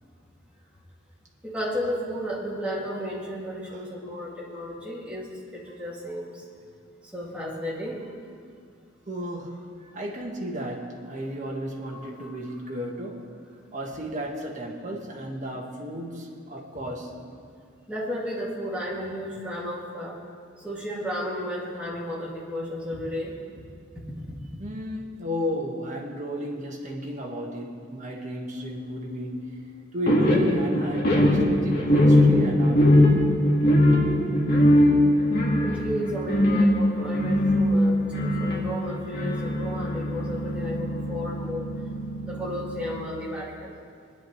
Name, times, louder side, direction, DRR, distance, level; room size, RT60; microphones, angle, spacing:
voice 1, 1.4-6.4 7.1-8.1 11.9-12.3 17.9-20.2 20.6-23.3 24.0-24.6 35.6-41.7 42.2-43.8, equal, 5° right, -6 dB, 2.5 m, -33 dB
voice 2, 9.1-13.3 13.7-17.1 24.6-29.6 29.9-32.9, equal, 40° right, -1 dB, 1.6 m, -34 dB
sound 1, 30.1-43.0, left 1 dB, 60° left, 2.1 m, -21 dB
22.0 x 10.5 x 3.3 m, 2.2 s
head